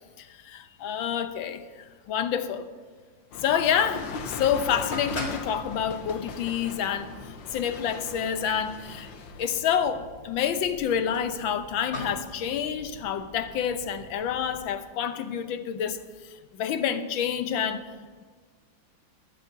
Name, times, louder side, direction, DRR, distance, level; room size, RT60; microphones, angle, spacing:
voice 1, 0.2-1.6 2.1-2.7 3.4-7.1 7.5-9.1 9.4-16.0 16.5-17.8, left 8 dB, 90° left, 9 dB, 1.6 m, -28 dB
sound 1, 3.3-9.6, left 5 dB, 75° left, 1.6 m, -39 dB
sound 2, 4.0-14.7, left 1 dB, 50° left, 3.5 m, -43 dB
22.0 x 12.0 x 2.8 m, 1.5 s
omnidirectional pair, 2.1 m